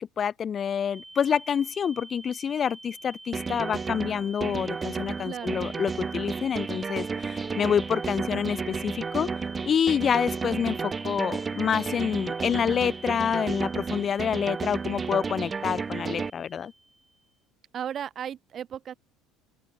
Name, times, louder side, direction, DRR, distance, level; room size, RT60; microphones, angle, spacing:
voice 1, 0.0-9.3 9.7-16.7, left 8 dB, 40° left, 0.8 m, -27 dB
sound 1, 0.9-17.3, right 2 dB, 10° right, 4.5 m, -47 dB
sound 2, 3.3-16.3, right 5 dB, 30° right, 4.6 m, -32 dB
voice 2, 5.2-5.6 17.7-18.9, right 9 dB, 45° right, 4.0 m, -35 dB
open air
hypercardioid pair, 80°, 0 cm